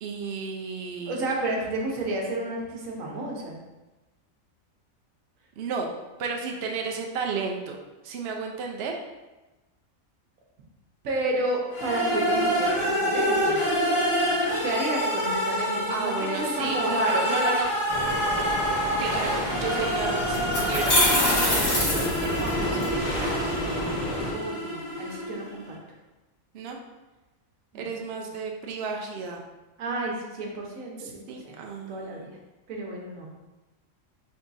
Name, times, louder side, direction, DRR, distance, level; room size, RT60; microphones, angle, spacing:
voice 1, 0.0-1.2 5.6-5.9 6.2-7.8 8.0-8.9 15.9-17.7 19.0-22.9 26.5-26.8 27.7-29.4 31.0-32.3, right 5 dB, 60° right, 1 dB, 0.7 m, -32 dB
voice 2, 1.0-3.6 11.0-13.6 14.6-17.6 24.3-25.8 27.7-27.9 29.8-31.6 31.9-32.4 32.7-33.3, right 2 dB, 80° right, -1 dB, 1.3 m, -31 dB
sound 1, 11.7-25.6, equal, 85° left, 1.7 m, -27 dB
sound 2, 17.9-24.3, equal, 25° left, 0.8 m, -31 dB
sound 3, 20.3-22.9, left 1 dB, 50° left, 1.5 m, -23 dB
3.7 x 3.5 x 4.0 m, 1.1 s
omnidirectional pair, 1.4 m